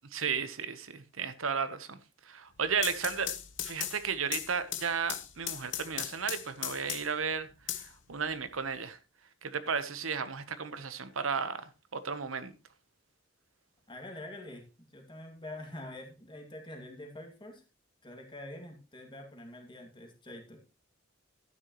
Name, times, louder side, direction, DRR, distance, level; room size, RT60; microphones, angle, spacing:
voice 1, 0.1-2.0 2.3-3.3 3.6-9.0 9.4-12.5, right 6 dB, 85° right, 1.1 m, -34 dB
sound 1, 2.6-7.2 7.7-8.7, left 11 dB, 65° left, 1.1 m, -38 dB
voice 2, 13.9-17.6 18.0-20.6, left 1 dB, 25° left, 2.2 m, -46 dB
12.0 x 9.9 x 3.1 m
head